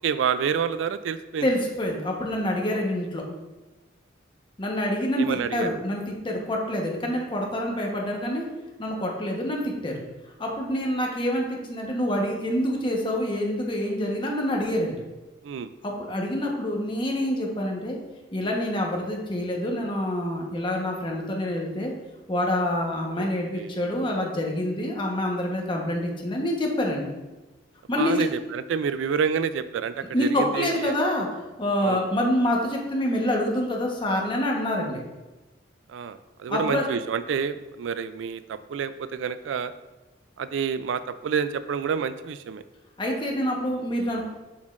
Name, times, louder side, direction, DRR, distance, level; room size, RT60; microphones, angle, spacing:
voice 1, 0.0-1.5 2.7-2.8 5.2-5.7 15.4-15.7 23.2-23.3 23.6-23.7 28.0-31.0 31.8-32.1 35.9-39.7 40.4-42.6, right 6 dB, 85° right, 13 dB, 0.3 m, -28 dB
voice 2, 1.4-3.2 4.6-8.5 8.8-9.9 10.4-15.0 15.8-18.0 18.3-21.9 22.3-27.1 27.9-28.2 30.1-31.3 31.6-35.0 36.5-36.9 43.0-44.2, left 1 dB, 25° left, -1 dB, 1.1 m, -26 dB
7.1 x 6.3 x 2.5 m, 1.1 s
head